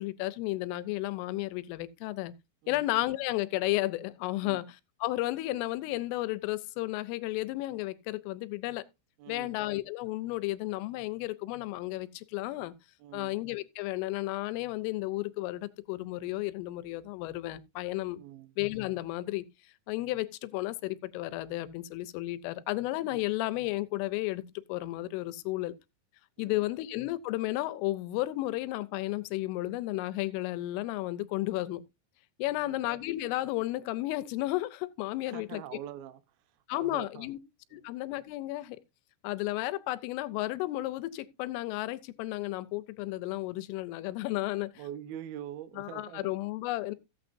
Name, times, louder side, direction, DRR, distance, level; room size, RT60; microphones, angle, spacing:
voice 1, 0.0-2.3 2.7-8.8 9.3-12.7 13.1-18.2 18.6-19.5 19.9-24.4 24.7-25.7 26.4-31.8 32.4-35.6 36.7-37.4 37.7-38.8 39.2-44.7 45.8-47.0, left 17 dB, 85° left, 3.2 m, -33 dB
voice 2, 9.2-9.5 13.0-13.3 18.2-18.5 26.4-26.7 32.5-32.8 35.3-36.2 36.7-37.3 37.7-37.8 44.8-46.3, right 11 dB, 90° right, 2.1 m, -44 dB
15.0 x 8.8 x 2.6 m
omnidirectional pair, 5.7 m